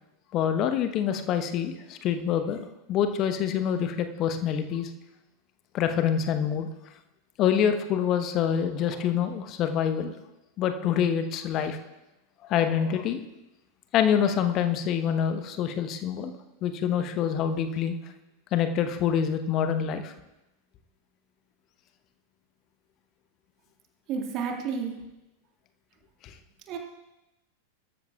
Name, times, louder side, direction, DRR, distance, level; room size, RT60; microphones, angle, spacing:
voice 1, 0.3-4.9 5.7-6.7 7.4-10.1 10.6-11.8 12.4-13.2 13.9-16.3 16.6-18.0 18.5-20.1 26.2-26.3, left 8 dB, 35° left, 8 dB, 1.1 m, -26 dB
voice 2, 24.1-24.9 26.7-26.8, right 6 dB, 35° right, 2 dB, 2.1 m, -30 dB
23.5 x 13.0 x 2.4 m, 0.95 s
figure-of-eight pair, 90°, 0 cm